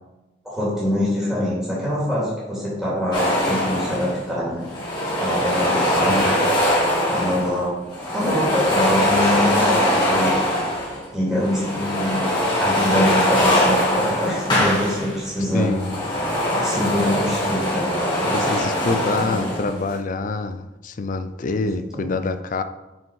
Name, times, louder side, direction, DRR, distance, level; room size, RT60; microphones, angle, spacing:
voice 1, 0.4-4.7 5.1-6.5 7.1-7.7 8.1-10.4 11.1-12.3 12.6-15.7 16.1-16.2 16.5-19.7 21.6-22.1, left 1 dB, 5° right, -8 dB, 2.5 m, -25 dB
sound 1, 3.1-4.2 4.6-7.6 7.9-11.0 11.3-15.2 15.5-19.8, left 1 dB, 25° left, 1.9 m, -22 dB
voice 2, 5.8-6.3 15.5-16.0 18.3-22.6, left 3 dB, 45° left, 10 dB, 0.4 m, -26 dB
5.6 x 5.3 x 4.7 m, 1.0 s
head